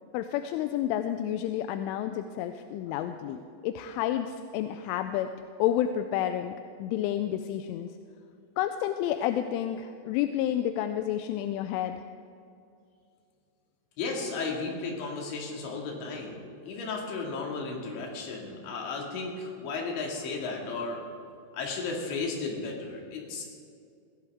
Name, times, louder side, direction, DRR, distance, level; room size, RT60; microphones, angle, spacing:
voice 1, 0.1-5.3 5.6-6.5 6.8-7.9 8.6-12.0, left 11 dB, 85° left, 8 dB, 3.0 m, -30 dB
voice 2, 14.0-16.4 16.6-21.0 21.5-23.4, left 4 dB, 70° left, -1 dB, 4.4 m, -34 dB
23.5 x 16.0 x 3.6 m, 2.4 s
omnidirectional pair, 5.6 m